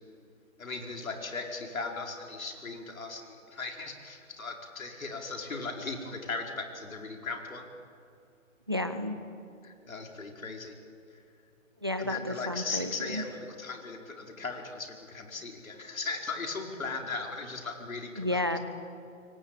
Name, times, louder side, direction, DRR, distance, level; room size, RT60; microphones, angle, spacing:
voice 1, 0.6-7.7 9.6-10.7 12.0-18.4, left 4 dB, 80° left, 2 dB, 5.0 m, -38 dB
voice 2, 8.7-9.2 11.8-13.2 18.2-18.6, left 1 dB, 20° right, 10 dB, 0.6 m, -31 dB
27.5 x 24.0 x 9.0 m, 2.6 s
hypercardioid pair, 180°, 41 cm